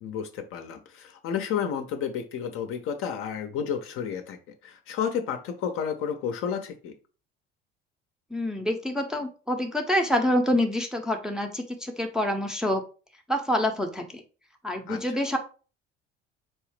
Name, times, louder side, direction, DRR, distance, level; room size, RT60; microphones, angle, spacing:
voice 1, 0.0-6.9 14.9-15.2, left 7 dB, 45° left, 7 dB, 0.6 m, -31 dB
voice 2, 8.3-12.8 13.3-14.2 14.6-15.4, left 1 dB, ahead, 2 dB, 0.6 m, -26 dB
4.5 x 2.7 x 3.1 m, 0.36 s
figure-of-eight pair, 55°, 32 cm